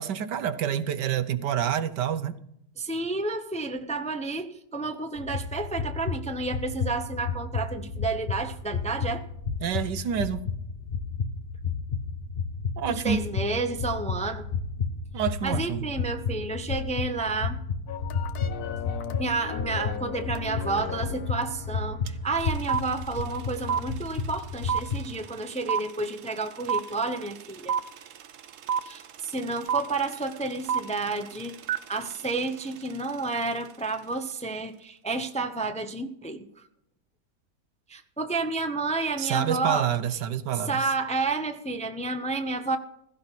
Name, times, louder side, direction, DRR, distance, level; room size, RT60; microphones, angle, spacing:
voice 1, 0.0-2.4 9.6-10.4 12.8-13.2 15.1-15.9 39.2-40.8, right 9 dB, 90° right, 1.5 m, -28 dB
voice 2, 2.8-9.3 12.9-14.4 15.4-17.6 19.2-27.8 28.8-31.6 31.9-36.5 37.9-39.9 40.6-42.8, right 3 dB, 5° left, 0.6 m, -30 dB
sound 1, 5.2-25.0, left 5 dB, 35° left, 1.3 m, -32 dB
sound 2, 17.9-22.3, left 8 dB, 65° left, 1.5 m, -37 dB
sound 3, 22.1-22.2 22.4-33.5, right 7 dB, 60° right, 0.9 m, -31 dB
16.0 x 15.5 x 4.2 m
omnidirectional pair, 1.8 m